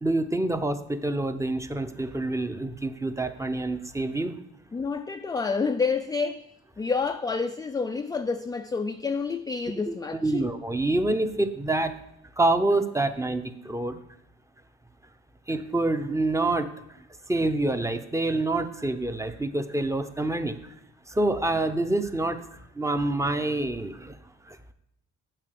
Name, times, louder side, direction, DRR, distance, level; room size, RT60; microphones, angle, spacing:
voice 1, 0.0-4.4 9.9-11.9 12.4-14.0 15.5-20.6 21.1-22.4 22.7-24.2 24.4-24.7, right 2 dB, 10° right, 0.7 m, -27 dB
voice 2, 4.7-6.4 6.8-10.4, left 4 dB, 15° left, 0.3 m, -28 dB
7.5 x 5.4 x 6.6 m
cardioid pair, 90°, 30 cm